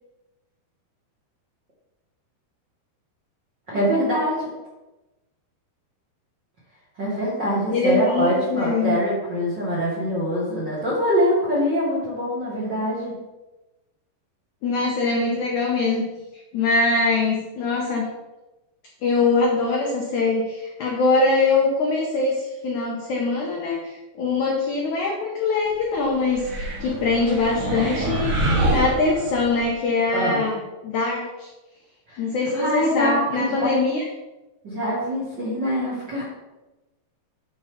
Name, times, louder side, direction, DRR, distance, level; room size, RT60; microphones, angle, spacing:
voice 1, 3.7-4.5 7.0-13.1 30.1-30.4 32.1-32.2 32.5-33.7 34.6-36.2, equal, 40° right, -6 dB, 1.6 m, -24 dB
voice 2, 7.7-9.0 14.6-16.1 16.5-18.1 19.0-31.5 32.2-34.0, left 3 dB, 75° left, -1 dB, 1.8 m, -23 dB
sound 1, 26.3-29.7, right 1 dB, 70° right, 4.5 m, -25 dB
9.5 x 4.4 x 5.1 m, 1.1 s
omnidirectional pair, 4.9 m